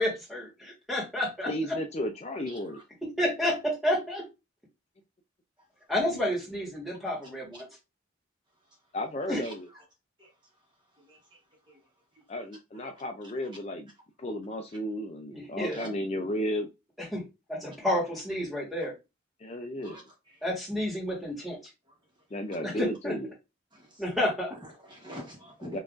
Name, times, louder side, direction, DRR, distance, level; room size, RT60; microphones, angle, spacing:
voice 1, 0.0-1.5 3.2-4.2 5.9-7.6 9.3-9.4 15.3-15.9 17.1-17.2 17.5-18.9 20.4-21.6 22.7-23.1 24.0-24.5, left 1 dB, ahead, 1.4 m, -30 dB
voice 2, 1.5-2.8 8.9-9.7 12.3-13.9 14.2-16.7 19.4-20.0 22.3-23.4 25.6-25.8, equal, 30° left, 0.4 m, -33 dB
voice 3, 2.5-2.8 7.5-7.6 9.4-9.5 10.2-10.3 11.1-11.2 11.7-11.8 15.7-15.9 19.8-20.0 23.7-24.0 24.5-25.8, equal, 25° right, 1.0 m, -45 dB
5.6 x 2.5 x 2.4 m
head